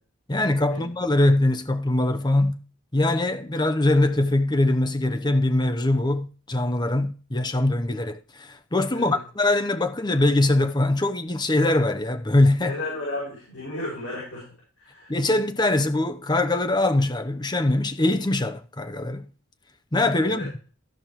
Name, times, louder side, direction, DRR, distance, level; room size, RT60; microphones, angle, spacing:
voice 1, 0.3-2.6 2.9-12.8 15.1-19.3 19.9-20.5, left 2 dB, 20° left, 0.8 m, -22 dB
voice 2, 12.7-14.5 14.8-15.1 20.2-20.5, left 2 dB, 75° left, 6.2 m, -33 dB
14.0 x 5.3 x 4.4 m
head